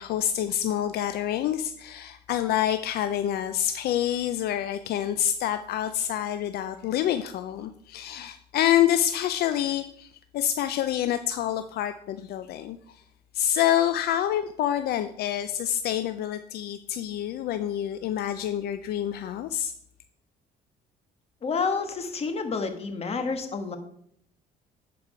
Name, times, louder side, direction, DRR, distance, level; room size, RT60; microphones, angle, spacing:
voice 1, 0.0-13.0 13.3-19.7, left 11 dB, 70° left, 10 dB, 0.5 m, -27 dB
voice 2, 21.4-23.8, left 4 dB, 35° left, 7 dB, 1.3 m, -29 dB
10.5 x 4.8 x 4.9 m, 0.69 s
cardioid pair, 110°, 17 cm